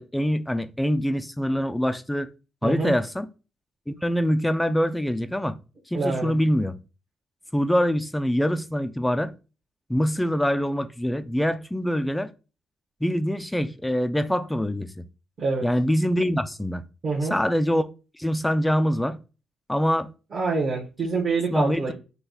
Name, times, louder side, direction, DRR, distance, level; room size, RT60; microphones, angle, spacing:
voice 1, 0.0-2.3 2.6-3.3 3.9-5.6 5.9-6.7 7.5-9.3 9.9-12.3 13.0-14.9 15.6-16.8 17.3-17.9 18.2-19.2 19.7-20.1 21.5-21.9, equal, 5° left, 0.4 m, -24 dB
voice 2, 2.6-2.9 5.9-6.3 15.4-15.7 17.0-17.3 20.3-21.9, right 4 dB, 50° right, 1.3 m, -26 dB
5.7 x 2.3 x 4.0 m
cardioid pair, 90°, 0 cm